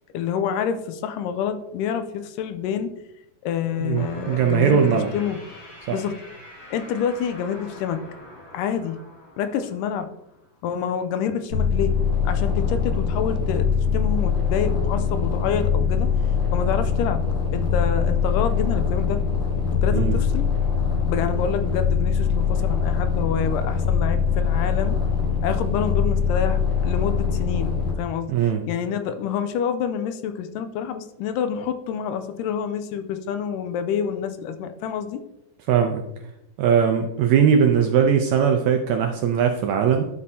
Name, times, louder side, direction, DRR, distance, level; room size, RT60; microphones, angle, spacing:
voice 1, 0.1-2.9 3.4-5.4 5.9-6.2 6.7-8.0 8.5-9.0 9.4-10.1 10.6-11.9 12.3-16.1 16.5-17.2 17.5-19.2 19.7-20.5 21.1-25.0 25.4-35.2, left 8 dB, 90° left, 9 dB, 2.2 m, -27 dB
voice 2, 3.8-5.1 5.9-6.0 19.9-20.2 28.3-28.6 35.7-36.0 36.6-40.1, right 7 dB, 80° right, 5 dB, 1.6 m, -20 dB
sound 1, 3.9-10.5, left 1 dB, 25° left, 1.8 m, -44 dB
sound 2, 11.5-27.9, left 6 dB, 55° left, 2.4 m, -22 dB
11.5 x 5.3 x 2.8 m, 0.86 s
omnidirectional pair, 3.8 m